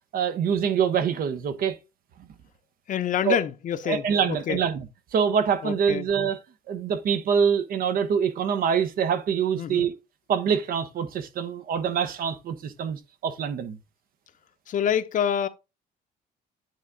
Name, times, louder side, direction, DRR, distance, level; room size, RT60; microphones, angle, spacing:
voice 1, 0.1-1.8 3.3-3.4 3.9-4.8 5.1-6.4 6.7-9.9 10.3-13.8, right 7 dB, 60° right, 1.1 m, -25 dB
voice 2, 2.9-4.6 5.6-6.1 9.6-9.9 14.7-15.5, left 9 dB, 50° left, 0.9 m, -27 dB
9.6 x 3.6 x 3.9 m
cardioid pair, 110°, 17 cm